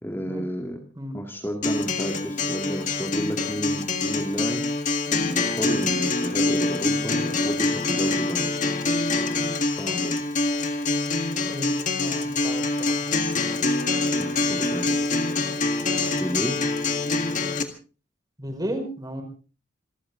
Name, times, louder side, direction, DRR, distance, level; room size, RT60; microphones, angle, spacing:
voice 1, 0.0-0.8 1.1-4.6 5.1-8.5 9.8-10.2 14.2-15.1 16.2-16.6, equal, 10° left, 1 dB, 2.1 m, -31 dB
Acoustic guitar, 1.6-17.6, left 3 dB, 40° left, 1.9 m, -25 dB
voice 2, 11.5-12.6 18.4-19.2, equal, 20° right, 4 dB, 5.4 m, -33 dB
27.5 x 13.5 x 3.8 m, 0.38 s
head